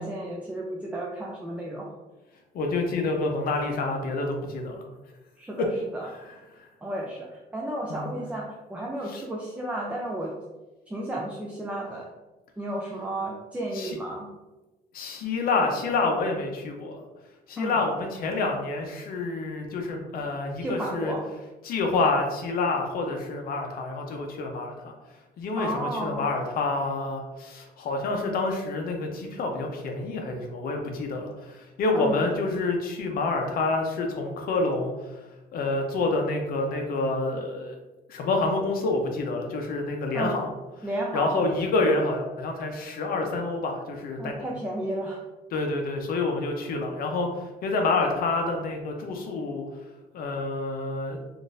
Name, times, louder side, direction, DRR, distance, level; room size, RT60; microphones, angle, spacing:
voice 1, 0.0-1.9 5.4-5.7 5.9-6.1 6.8-7.3 7.5-10.4 10.9-12.1 12.6-14.3 17.6-17.8 20.6-21.2 25.6-26.3 31.9-32.2 40.1-40.4 40.8-41.4 44.2-45.2, right 1 dB, 10° right, -2 dB, 0.4 m, -32 dB
voice 2, 2.5-4.8 5.6-5.7 6.6-6.7 7.9-8.1 9.1-9.2 13.7-14.0 14.9-17.0 17.5-21.1 21.6-24.9 25.4-34.9 35.5-37.8 38.1-40.5 41.1-44.4 45.5-47.3 47.6-49.6 50.1-51.2, left 3 dB, 60° left, 3 dB, 0.6 m, -28 dB
3.7 x 2.5 x 2.5 m, 1.1 s
cardioid pair, 115°, 17 cm